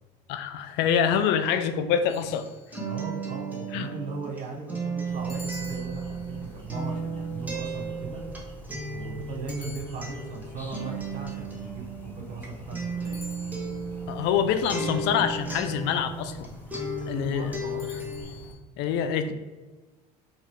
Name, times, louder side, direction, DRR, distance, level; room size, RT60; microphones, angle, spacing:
voice 1, 0.3-2.5 3.7-3.9 14.1-16.5 17.1-17.5 18.8-19.3, left 8 dB, 60° left, 9 dB, 0.4 m, -25 dB
sound 1, 2.1-3.0 5.3-6.5 9.5-10.5 13.0-14.0 17.8-18.6, left 3 dB, 45° left, 0.8 m, -48 dB
Acoustic guitar, 2.2-16.5 16.7-18.2, right 3 dB, 10° right, 1.2 m, -34 dB
voice 2, 2.8-8.2 8.9-13.3 17.1-17.9, right 4 dB, 40° right, 2 dB, 0.9 m, -38 dB
sound 2, 5.0-18.5, left 1 dB, 10° left, 0.9 m, -45 dB
2.9 x 2.8 x 4.5 m, 1.2 s
hypercardioid pair, 75°, 20 cm